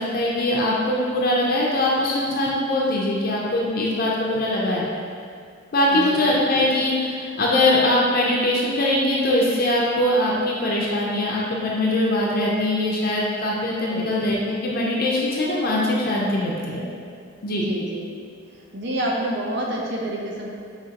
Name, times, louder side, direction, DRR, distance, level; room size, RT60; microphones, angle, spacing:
voice 1, 0.0-4.9 5.7-16.9 17.4-17.6, left 1 dB, 50° left, -4 dB, 0.5 m, -22 dB
voice 2, 5.9-6.2 13.9-14.1 17.5-18.0 18.7-20.5, right 1 dB, 60° right, -2 dB, 0.6 m, -28 dB
5.0 x 2.9 x 2.8 m, 2.2 s
head